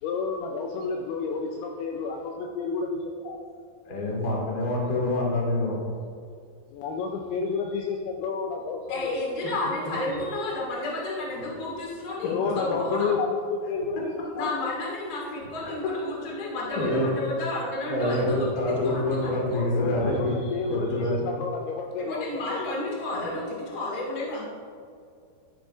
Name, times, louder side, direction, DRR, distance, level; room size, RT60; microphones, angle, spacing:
voice 1, 0.0-3.4 6.7-9.1 10.3-10.5 12.2-14.1 14.4-14.5 19.7-23.0, left 5 dB, 85° left, 1 dB, 2.3 m, -30 dB
voice 2, 3.8-5.7 15.6-16.2 16.7-17.1 17.9-20.3 20.7-21.2 23.1-23.3, left 1 dB, 60° left, -3 dB, 0.9 m, -26 dB
voice 3, 8.9-13.1 14.3-19.6 22.0-24.4, left 2 dB, 45° left, -4 dB, 1.2 m, -32 dB
12.5 x 9.0 x 2.5 m, 2.3 s
omnidirectional pair, 5.2 m